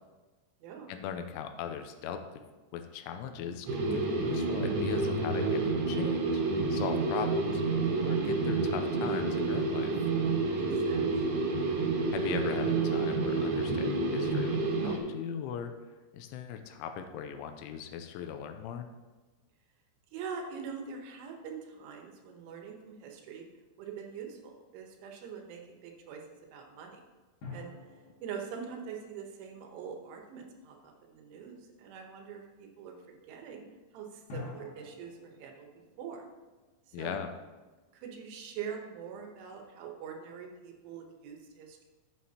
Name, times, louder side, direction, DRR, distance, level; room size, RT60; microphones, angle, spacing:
voice 1, 0.9-2.4 2.7-6.4 6.7-7.6 8.0-9.9 12.1-15.7 16.1-18.9 36.9-37.3, left 8 dB, 90° left, 7 dB, 3.1 m, -39 dB
sound 1, 3.7-15.0, right 3 dB, 65° right, 3.0 m, -29 dB
voice 2, 10.5-11.1 20.1-23.5 23.8-26.2 26.5-27.0 27.5-27.7 28.2-33.0 33.3-33.6 33.9-35.7 36.0-36.2 36.9-37.2 37.9-41.8, right 6 dB, 80° right, 2 dB, 3.5 m, -43 dB
sound 2, 27.4-30.2 34.3-37.5, left 4 dB, 60° left, 4.0 m, -49 dB
12.5 x 7.7 x 2.8 m, 1.2 s
omnidirectional pair, 5.5 m